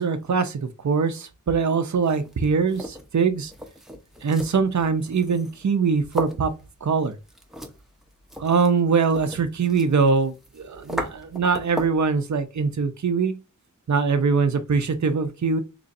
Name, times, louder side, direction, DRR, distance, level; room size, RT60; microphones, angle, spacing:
voice 1, 0.0-3.5 4.2-6.5 6.8-7.2 8.4-13.4 13.9-15.6, right 5 dB, 60° right, 0.6 m, -22 dB
sound 1, 1.9-12.1, equal, ahead, 0.8 m, -38 dB
4.1 x 3.0 x 2.5 m
wide cardioid pair, 40°, 33 cm